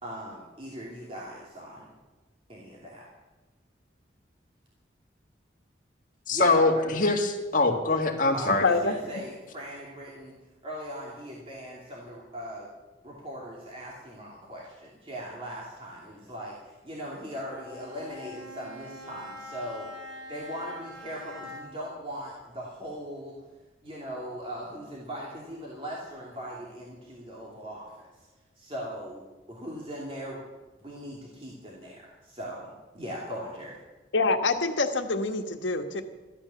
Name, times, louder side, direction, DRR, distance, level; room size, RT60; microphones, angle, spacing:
voice 1, 0.0-1.9 2.5-3.0 6.3-6.8 8.3-10.3 10.6-12.7 13.0-23.3 23.8-28.3 28.5-29.2 29.5-30.4 30.8-33.8, equal, 30° right, -4 dB, 2.8 m, -39 dB
voice 2, 6.3-8.6, left 3 dB, 45° left, 1 dB, 2.0 m, -23 dB
voice 3, 8.6-9.2 34.1-36.0, left 3 dB, 90° left, 6 dB, 1.4 m, -26 dB
Bowed string instrument, 17.4-21.9, left 1 dB, 90° right, 5.5 m, -44 dB
14.0 x 12.5 x 7.0 m, 1.2 s
head